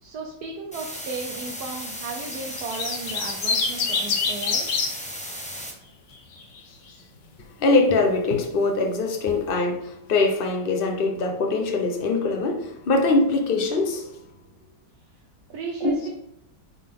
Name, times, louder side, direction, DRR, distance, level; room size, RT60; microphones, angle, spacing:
voice 1, 0.0-4.7 15.5-16.1, right 4 dB, 65° right, 1 dB, 1.4 m, -35 dB
sound 1, 0.7-5.7, equal, 5° left, 0.8 m, -36 dB
sound 2, 2.3-4.9 6.1-6.6, left 5 dB, 75° left, 1.7 m, -25 dB
voice 2, 7.6-14.1 15.8-15.9, left 3 dB, 35° left, 3 dB, 1.0 m, -22 dB
9.4 x 4.0 x 3.7 m, 0.81 s
omnidirectional pair, 2.0 m